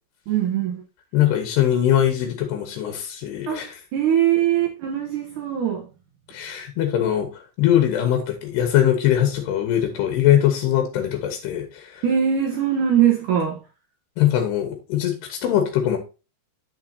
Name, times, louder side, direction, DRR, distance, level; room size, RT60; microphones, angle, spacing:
voice 1, 0.3-0.8 3.5-3.6 3.9-5.9 12.0-13.6, right 9 dB, 70° right, 1.9 m, -21 dB
voice 2, 1.1-3.8 6.3-12.0 14.2-16.0, left 11 dB, 85° left, 3.2 m, -21 dB
8.9 x 6.9 x 2.8 m
omnidirectional pair, 4.7 m